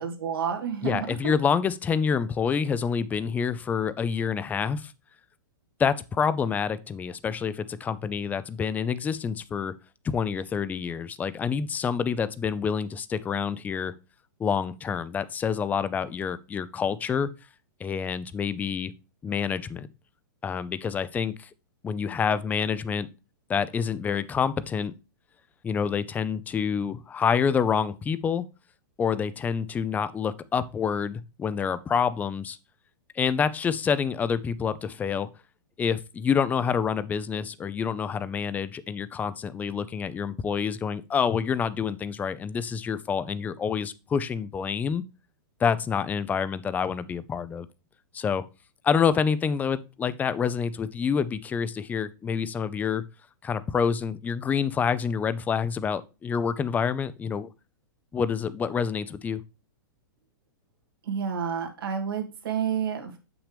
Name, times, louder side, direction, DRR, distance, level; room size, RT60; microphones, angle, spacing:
voice 1, 0.0-1.3 61.0-63.2, right 7 dB, 80° right, 2.1 m, -30 dB
voice 2, 0.8-4.9 5.8-9.7 10.0-13.9 14.4-17.3 17.8-18.9 19.2-19.9 20.4-21.5 21.8-23.1 23.5-24.9 25.6-28.5 29.0-32.6 33.2-35.3 35.8-45.0 45.6-47.7 48.1-48.4 48.8-53.0 53.4-57.5 58.1-59.4, left 6 dB, 15° left, 0.4 m, -27 dB
7.1 x 6.1 x 3.3 m
hypercardioid pair, 130°, 12 cm